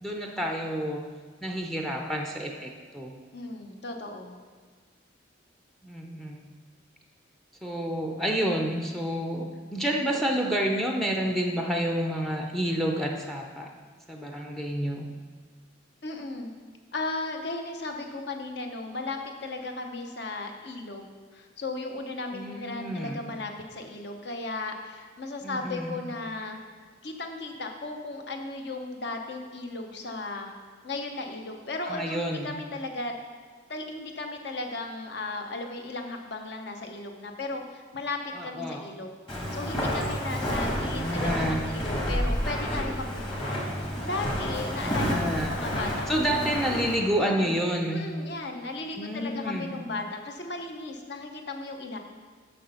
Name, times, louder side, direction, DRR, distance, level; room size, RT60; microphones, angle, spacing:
voice 1, 0.0-1.1 1.4-3.2 5.8-6.5 7.6-13.7 14.1-15.1 22.3-23.2 25.4-26.0 31.9-32.5 38.4-38.8 40.7-41.7 44.8-45.6 46.1-48.1 49.0-49.8, equal, ahead, 2 dB, 0.5 m, -29 dB
voice 2, 3.3-4.4 16.0-16.5 16.9-21.0 21.3-26.6 27.0-30.5 30.8-33.1 33.7-46.6 47.2-47.5 47.9-52.0, left 2 dB, 55° left, 4 dB, 0.9 m, -36 dB
Walk footsteps, 39.3-47.0, equal, 25° left, 1.5 m, -30 dB
6.8 x 6.4 x 5.5 m, 1.5 s
head